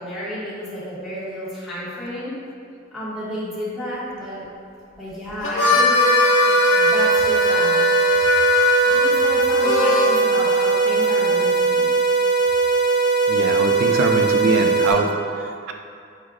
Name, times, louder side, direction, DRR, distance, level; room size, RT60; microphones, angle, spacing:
voice 1, 0.0-2.3 2.9-4.5 5.0-8.2 8.9-11.9, equal, ahead, -12 dB, 0.8 m, -31 dB
Harmonica, 5.3-10.2, left 3 dB, 80° left, 0.5 m, -20 dB
sound 1, 5.9-14.9, right 4 dB, 35° left, 0.6 m, -19 dB
voice 2, 13.3-15.1, right 3 dB, 85° right, 4 dB, 0.3 m, -22 dB
4.6 x 2.0 x 2.4 m, 2.3 s
head